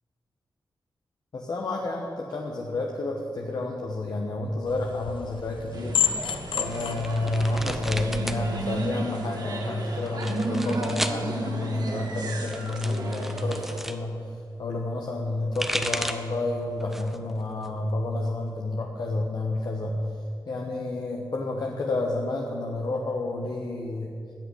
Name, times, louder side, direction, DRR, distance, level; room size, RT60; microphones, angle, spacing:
voice 1, 1.3-6.0 6.5-14.2 14.6-19.9 20.5-24.1, left 2 dB, 55° left, -1 dB, 1.3 m, -30 dB
sound 1, 4.7-8.9, left 7 dB, 85° left, 0.8 m, -32 dB
sound 2, 5.7-13.8, right 2 dB, 50° right, 2.0 m, -34 dB
sound 3, 6.7-8.4 8.7-9.4 10.1-11.2 12.2-14.0 15.2-16.4 16.8-17.3 17.6-18.6, equal, 5° right, 0.8 m, -34 dB
13.5 x 6.5 x 9.7 m, 2.4 s
cardioid pair, 85°, 8 cm